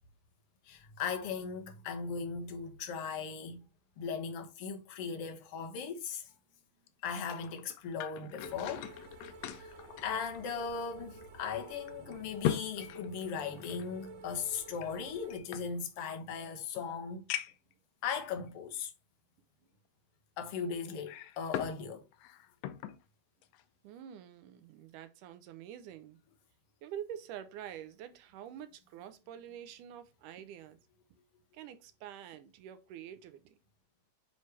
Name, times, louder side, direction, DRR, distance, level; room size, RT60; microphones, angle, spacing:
voice 1, 0.7-3.6 4.0-6.3 7.0-8.9 9.5-17.2 18.0-18.9 20.4-22.0, left 6 dB, 60° left, 1.7 m, -38 dB
sound 1, 6.9-10.9 11.2-11.3 11.9-13.9 14.8-16.2 16.7-16.8 17.3-17.7 18.5-18.6 20.9-21.8 22.1-23.0 23.4-23.6, left 11 dB, 90° left, 1.5 m, -40 dB
sound 2, 8.4-15.4, right 3 dB, 65° right, 2.4 m, -52 dB
voice 2, 23.8-26.2 26.8-30.8 31.5-33.6, right 10 dB, 80° right, 2.3 m, -47 dB
9.4 x 3.4 x 3.3 m
omnidirectional pair, 3.7 m